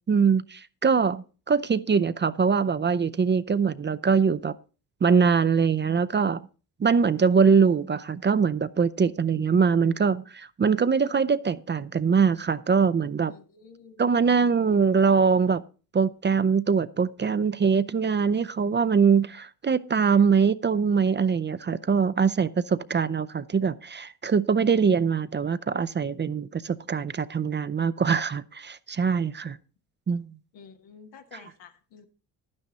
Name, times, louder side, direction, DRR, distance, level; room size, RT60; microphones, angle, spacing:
voice 1, 0.1-4.5 5.0-6.5 6.8-13.3 14.0-15.6 15.9-29.6 30.1-30.3, right 6 dB, 25° right, 0.5 m, -23 dB
voice 2, 13.3-14.1 30.5-32.1, left 6 dB, 85° left, 1.5 m, -50 dB
11.0 x 9.8 x 4.1 m
supercardioid pair, 60°, 42 cm